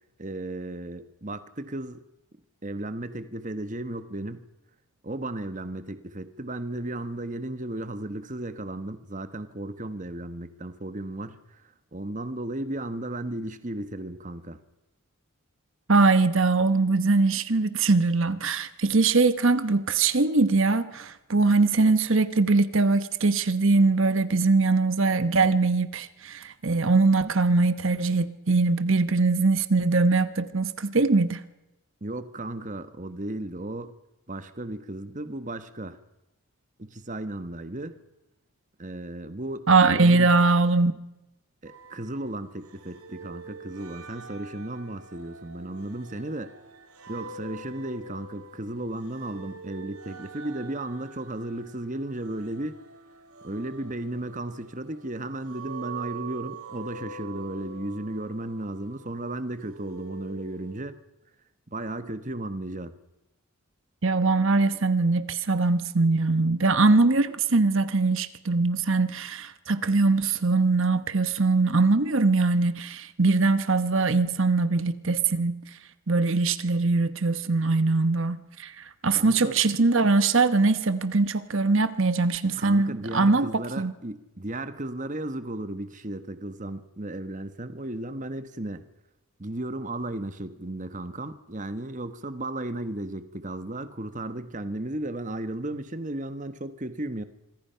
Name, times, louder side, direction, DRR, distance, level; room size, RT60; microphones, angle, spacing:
voice 1, 0.2-2.0 2.6-4.5 5.0-14.6 32.0-33.9 34.3-36.0 36.8-38.0 38.8-39.7 39.9-40.3 41.6-46.5 47.1-52.8 53.4-60.9 61.7-62.9 79.1-79.6 82.6-88.9 89.4-97.2, right 1 dB, 35° right, 1.2 m, -35 dB
voice 2, 15.9-31.4 39.7-41.0 64.0-75.6 76.1-83.9, right 3 dB, 60° right, 1.1 m, -22 dB
sound 1, 41.7-60.9, right 4 dB, 80° right, 3.6 m, -45 dB
26.5 x 24.0 x 5.7 m
head